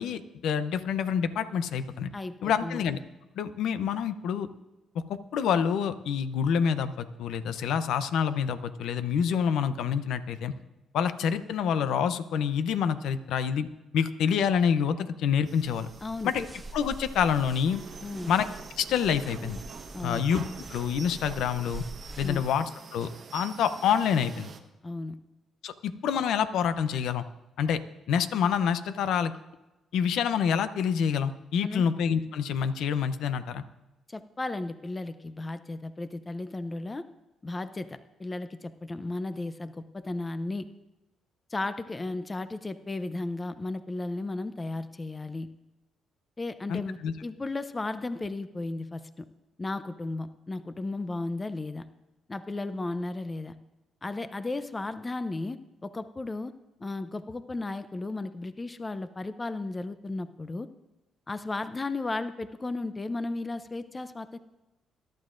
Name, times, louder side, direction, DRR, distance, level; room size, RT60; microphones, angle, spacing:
voice 1, 0.0-2.1 2.4-3.0 3.4-4.5 4.9-10.5 10.9-13.7 13.9-15.9 16.2-16.4 16.7-17.8 18.3-18.5 18.8-19.6 20.0-20.4 20.7-21.8 22.2-24.5 25.6-27.2 27.6-27.8 28.1-29.3 29.9-33.6 46.7-47.1, left 7 dB, 80° left, 12 dB, 0.6 m, -27 dB
voice 2, 2.1-2.8 16.0-16.3 18.0-18.3 19.9-20.2 22.2-22.4 24.8-25.2 31.6-31.9 34.1-37.0 37.4-40.7 41.5-45.5 46.4-49.3 49.6-51.8 52.3-53.5 54.0-55.6 55.8-56.5 56.8-60.7 61.3-64.4, left 2 dB, 25° left, 12 dB, 0.5 m, -34 dB
sound 1, 15.5-24.6, right 5 dB, 55° right, 1.1 m, -46 dB
sound 2, 15.6-22.6, right 2 dB, 15° right, 0.9 m, -45 dB
21.0 x 12.0 x 2.6 m, 1.0 s
cardioid pair, 90°, 0 cm